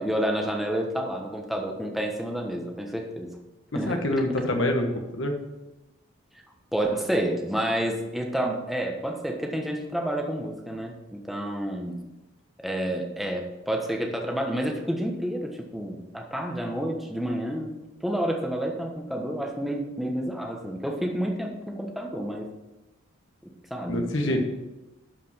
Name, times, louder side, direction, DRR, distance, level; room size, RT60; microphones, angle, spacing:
voice 1, 0.0-3.3 3.7-4.0 6.7-12.0 12.6-22.5 23.7-24.4, right 1 dB, ahead, 1 dB, 1.1 m, -29 dB
voice 2, 3.9-5.4 23.9-24.4, left 1 dB, 60° left, 4 dB, 1.3 m, -26 dB
11.5 x 5.2 x 5.8 m, 1.0 s
head